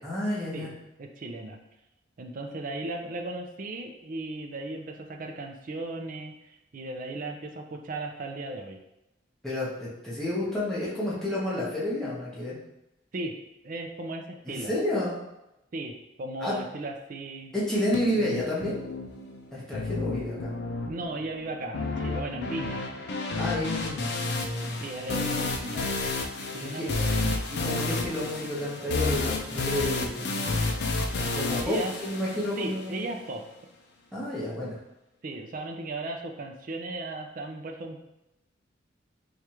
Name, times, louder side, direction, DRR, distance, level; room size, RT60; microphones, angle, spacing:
voice 1, 0.0-0.7 9.4-12.6 14.5-15.1 16.4-16.6 17.5-18.8 19.5-20.5 23.4-24.1 24.4-24.8 26.6-26.9 27.5-30.4 31.3-33.1 34.1-34.8, left 1 dB, 5° left, -8 dB, 1.0 m, -30 dB
voice 2, 1.0-1.6 2.2-8.8 13.1-13.3 13.6-14.7 15.7-17.5 20.9-22.8 24.8-26.1 26.5-27.5 31.6-31.9 32.6-33.4 35.2-38.0, right 2 dB, 45° right, 3 dB, 0.4 m, -36 dB
sound 1, 17.9-32.9, left 3 dB, 60° left, 0.5 m, -31 dB
4.7 x 2.4 x 2.9 m, 0.91 s
head